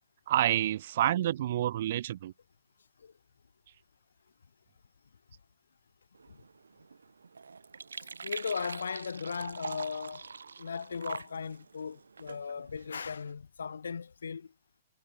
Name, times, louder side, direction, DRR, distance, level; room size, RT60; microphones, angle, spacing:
voice 1, 0.3-2.3, right 12 dB, 55° right, 2.3 m, -28 dB
sound 1, 6.1-13.3, right 5 dB, 85° right, 6.6 m, -45 dB
voice 2, 8.0-10.2 10.6-14.5, left 6 dB, 80° left, 4.3 m, -37 dB
hypercardioid pair, 120°, 0 cm